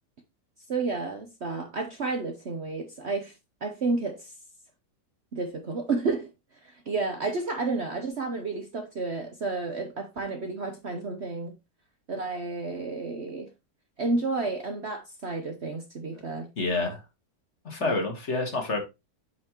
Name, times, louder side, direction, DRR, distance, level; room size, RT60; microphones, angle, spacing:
voice 1, 0.7-3.3 3.6-4.3 5.3-6.3 6.6-11.5 12.1-13.5 14.0-16.5 17.8-18.0, right 3 dB, 45° right, 1.0 m, -31 dB
voice 2, 16.6-17.0 17.7-18.8, left 3 dB, 40° left, 1.8 m, -28 dB
8.1 x 5.6 x 3.0 m
omnidirectional pair, 1.9 m